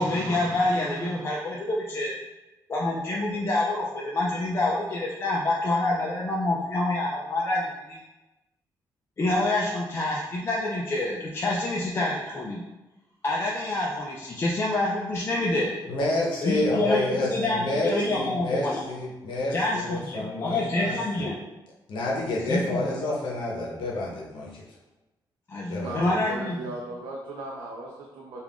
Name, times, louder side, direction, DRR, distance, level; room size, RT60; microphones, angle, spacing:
voice 1, 0.0-2.2 2.7-8.0 9.2-12.6 13.2-15.7 16.4-18.8 19.5-21.4 22.5-22.8 25.5-26.7, left 2 dB, 30° left, -3 dB, 0.4 m, -27 dB
voice 2, 15.9-21.3 21.9-24.6 25.7-26.0, left 2 dB, 75° left, -3 dB, 0.7 m, -29 dB
voice 3, 25.8-28.4, right 2 dB, 75° right, -3 dB, 0.5 m, -37 dB
2.4 x 2.3 x 3.4 m, 1.1 s
cardioid pair, 120°, 8 cm